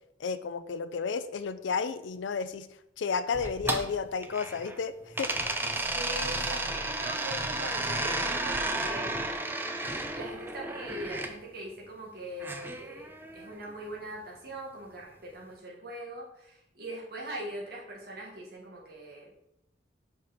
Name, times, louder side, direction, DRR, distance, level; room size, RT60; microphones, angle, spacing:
voice 1, 0.2-2.7 3.0-5.3, left 5 dB, 90° left, 12 dB, 0.4 m, -32 dB
sound 1, 3.3-4.8 5.1-11.3 12.4-13.5, right 2 dB, 10° right, 0.4 m, -33 dB
voice 2, 5.9-9.1 10.1-19.4, right 1 dB, 55° right, -3 dB, 1.4 m, -41 dB
5.8 x 4.7 x 4.0 m, 0.79 s
head